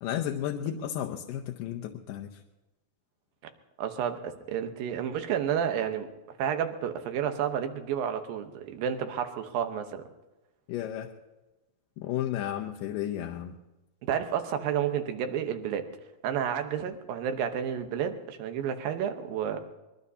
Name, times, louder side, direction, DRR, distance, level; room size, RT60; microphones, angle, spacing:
voice 1, 0.0-2.4 10.7-11.1 12.0-13.5, left 11 dB, 80° left, 2 dB, 2.3 m, -33 dB
voice 2, 3.8-6.1 6.4-10.0 14.1-15.9 16.2-19.6, right 8 dB, 85° right, 7 dB, 2.9 m, -30 dB
24.0 x 21.5 x 2.8 m, 1.1 s
omnidirectional pair, 4.0 m